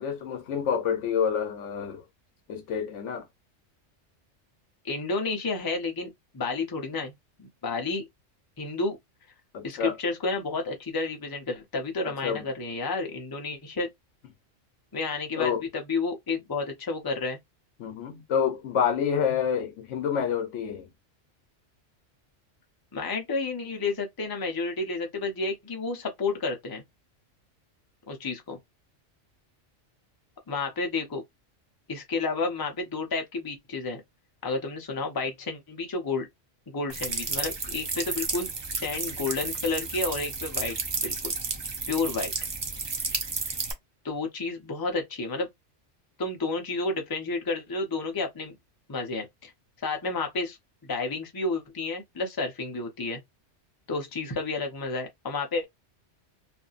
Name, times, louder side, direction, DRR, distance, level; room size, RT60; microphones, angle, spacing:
voice 1, 0.0-2.0 2.5-3.2 9.5-9.9 12.0-12.4 15.3-15.6 17.8-20.9, left 7 dB, 75° left, 1.0 m, -28 dB
voice 2, 4.8-7.1 7.4-8.1 8.6-9.0 9.6-13.9 14.9-17.4 22.9-26.8 28.1-28.6 30.5-31.2 31.9-34.0 34.4-36.3 36.7-38.5 38.7-40.8 41.0-41.3 41.9-42.3 44.0-45.5 46.2-48.6 48.9-49.5 49.8-50.6 50.8-53.2 53.9-55.6, left 3 dB, 25° left, 0.6 m, -31 dB
sound 1, 36.9-43.7, right 4 dB, 40° right, 0.3 m, -32 dB
2.7 x 2.5 x 2.4 m
omnidirectional pair, 1.2 m